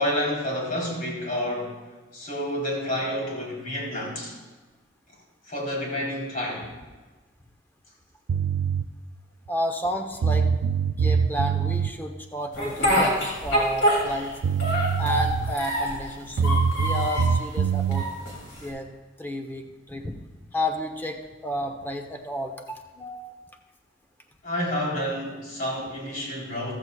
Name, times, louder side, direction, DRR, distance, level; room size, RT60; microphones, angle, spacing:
voice 1, 0.0-1.8 2.1-4.3 5.5-6.7 24.4-26.7, left 1 dB, 45° left, -4 dB, 3.8 m, -29 dB
sound 1, 8.3-8.9 9.9-10.0 10.2-11.9 14.1-14.2 14.4-15.6 16.4-18.1, right 6 dB, 75° right, 0.4 m, -24 dB
voice 2, 9.5-10.5 11.0-13.2 13.4-14.3 15.0-18.1 18.6-18.9 19.2-20.2 20.5-23.4, equal, 10° left, 4 dB, 0.9 m, -32 dB
Speech, 12.6-14.3 14.6-16.0 16.4-17.4 17.9-18.7, equal, 70° left, 3.0 m, -25 dB
14.5 x 13.5 x 2.4 m, 1.3 s
head